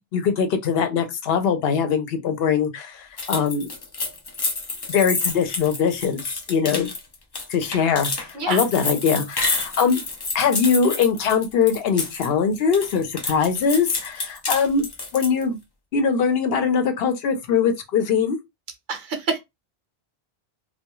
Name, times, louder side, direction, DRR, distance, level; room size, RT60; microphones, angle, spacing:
voice 1, 0.1-3.7 4.9-6.2 6.5-6.9 7.5-10.0 10.3-14.8 15.1-15.6 15.9-18.4, left 6 dB, 75° left, 0.8 m, -22 dB
sound 1, 3.2-12.3 12.6-15.4, left 3 dB, 40° left, 0.4 m, -29 dB
voice 2, 18.9-19.4, right 4 dB, 60° right, 0.7 m, -27 dB
2.3 x 2.2 x 2.9 m
omnidirectional pair, 1.0 m